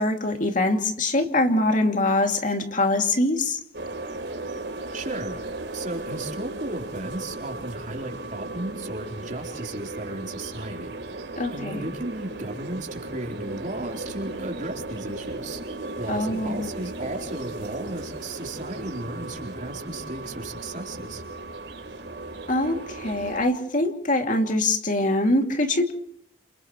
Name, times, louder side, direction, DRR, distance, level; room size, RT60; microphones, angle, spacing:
voice 1, 0.0-3.6 11.4-11.9 16.1-16.7 22.5-25.9, left 2 dB, 45° left, 4 dB, 2.6 m, -23 dB
sound 1, 3.7-23.4, right 2 dB, 90° right, 3.7 m, -36 dB
voice 2, 4.9-5.4 5.7-10.9 11.5-15.6 16.0-21.2, right 2 dB, 45° right, 2 dB, 3.9 m, -35 dB
30.0 x 28.0 x 3.2 m, 0.67 s
head